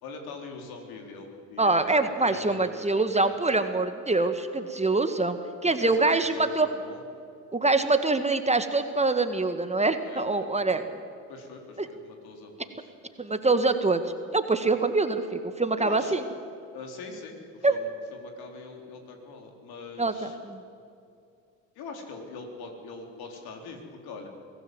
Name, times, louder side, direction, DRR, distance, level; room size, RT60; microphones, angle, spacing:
voice 1, 0.0-3.4 5.8-7.0 10.0-10.5 11.3-12.9 15.8-16.2 16.7-20.4 21.8-24.3, left 3 dB, 65° left, 3 dB, 4.1 m, -43 dB
voice 2, 1.6-6.7 7.5-11.0 11.8-11.9 13.2-14.0 14.3-16.2 17.6-17.8 20.0-20.6, right 3 dB, 15° right, 8 dB, 1.7 m, -25 dB
24.0 x 16.5 x 7.9 m, 2.4 s
hypercardioid pair, 60°, 40 cm